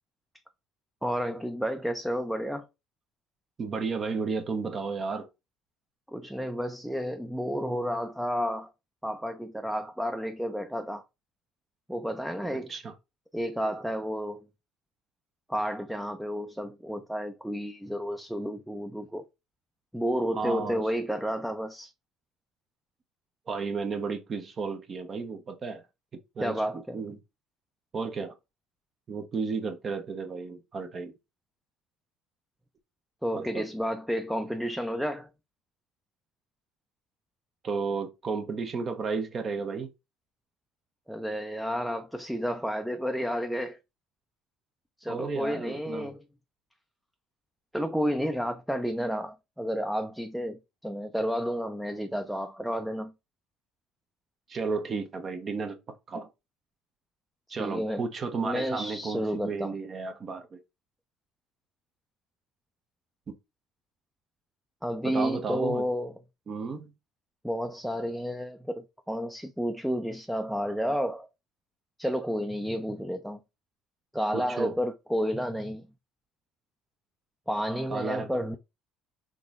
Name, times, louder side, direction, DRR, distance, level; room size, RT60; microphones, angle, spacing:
voice 1, 1.0-2.7 6.1-8.7 9.0-11.0 11.9-12.7 13.3-14.5 15.5-19.3 19.9-21.9 26.4-27.0 33.2-35.3 41.1-43.8 45.0-46.2 47.7-53.1 57.6-58.1 58.4-59.8 64.8-66.1 67.4-71.3 72.0-73.4 74.1-75.8 77.5-78.6, equal, ahead, 0.4 m, -31 dB
voice 2, 3.6-5.3 12.7-12.9 20.3-20.8 23.5-25.8 26.4-26.6 26.9-27.2 27.9-28.3 29.1-31.1 33.3-33.6 37.6-39.9 45.1-46.1 54.5-56.3 57.5-60.6 63.3-63.4 65.0-65.9 66.5-66.9 74.3-74.7 77.9-78.3, right 4 dB, 35° right, 0.7 m, -33 dB
3.7 x 3.0 x 2.4 m
cardioid pair, 105°, 0 cm